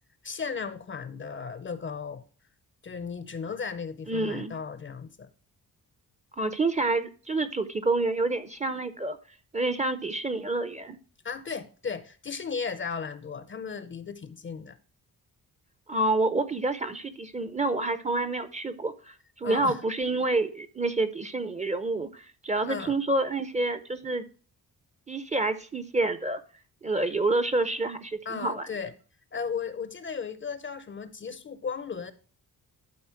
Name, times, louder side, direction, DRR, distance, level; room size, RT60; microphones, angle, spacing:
voice 1, 0.2-2.2 2.8-5.3 11.2-14.8 19.4-19.8 22.6-23.0 28.3-28.9 29.3-32.1, left 5 dB, 30° left, 0.5 m, -35 dB
voice 2, 4.1-4.5 6.3-9.2 9.5-11.0 15.9-24.3 25.1-26.4 26.8-28.7, right 2 dB, 20° right, 0.5 m, -28 dB
11.5 x 4.2 x 4.4 m
wide cardioid pair, 165°, 37 cm